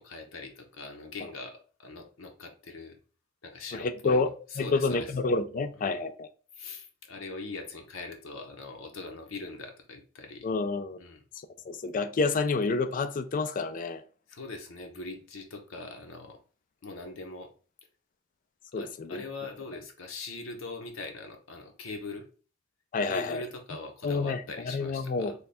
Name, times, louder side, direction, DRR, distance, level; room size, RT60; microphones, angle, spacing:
voice 1, 0.0-3.0 3.4-4.2 4.5-5.1 5.8-6.0 6.5-10.5 11.0-11.2 14.3-16.4 16.8-17.5 18.7-22.3 23.0-25.3, left 3 dB, 80° left, 0.8 m, -42 dB
voice 2, 3.7-4.3 4.6-6.3 10.4-11.0 11.7-14.0 18.7-19.2 22.9-23.4 24.0-25.3, left 3 dB, 40° left, 0.4 m, -29 dB
3.4 x 2.3 x 4.1 m
head